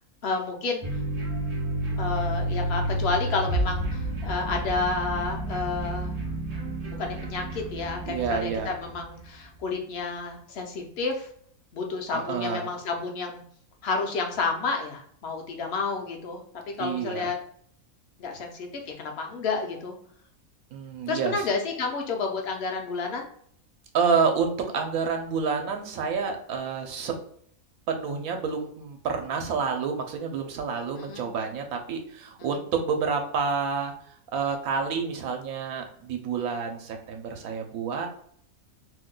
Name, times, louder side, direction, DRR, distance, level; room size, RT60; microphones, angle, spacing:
voice 1, 0.2-1.0 2.0-6.2 6.8-11.3 11.7-13.4 13.8-16.4 16.8-17.4 18.2-20.0 21.1-23.3 31.0-31.3, left 4 dB, 55° left, 2 dB, 0.8 m, -30 dB
sound 1, 0.8-9.1, right 1 dB, 50° right, 0.5 m, -30 dB
voice 2, 8.1-8.7 12.1-12.7 16.8-17.3 20.7-21.5 23.9-27.2 27.9-33.9 34.3-38.1, right 5 dB, 80° right, 3 dB, 1.0 m, -28 dB
2.8 x 2.2 x 3.7 m, 0.64 s
omnidirectional pair, 1.5 m